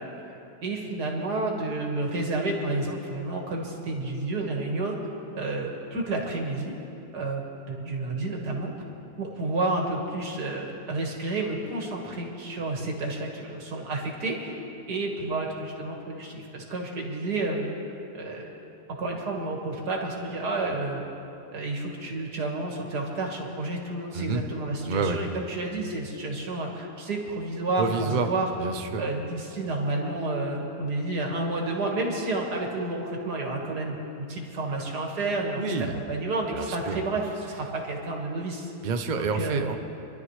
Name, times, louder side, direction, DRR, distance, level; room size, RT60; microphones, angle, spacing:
voice 1, 0.6-5.0 5.3-6.8 7.1-8.7 9.2-14.6 14.9-17.7 18.1-18.5 19.0-21.0 21.5-28.5 29.0-38.7 39.1-39.6, right 2 dB, 90° right, 0 dB, 2.3 m, -30 dB
voice 2, 24.8-25.2 27.8-28.3 28.6-29.0 35.6-35.9 36.5-37.0 38.8-39.8, right 4 dB, 40° right, 6 dB, 0.7 m, -28 dB
26.0 x 12.0 x 3.2 m, 2.9 s
omnidirectional pair, 1.7 m